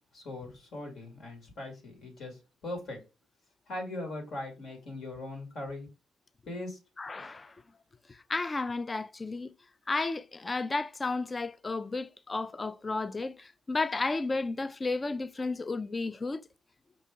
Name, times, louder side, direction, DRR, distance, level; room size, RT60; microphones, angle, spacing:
voice 1, 0.1-3.0 3.7-5.9 6.5-6.8, left 2 dB, 65° left, 1.9 m, -40 dB
voice 2, 7.0-7.6 8.1-9.5 9.9-16.4, left 3 dB, 25° left, 0.3 m, -33 dB
5.1 x 2.7 x 3.5 m
cardioid pair, 90°, 0 cm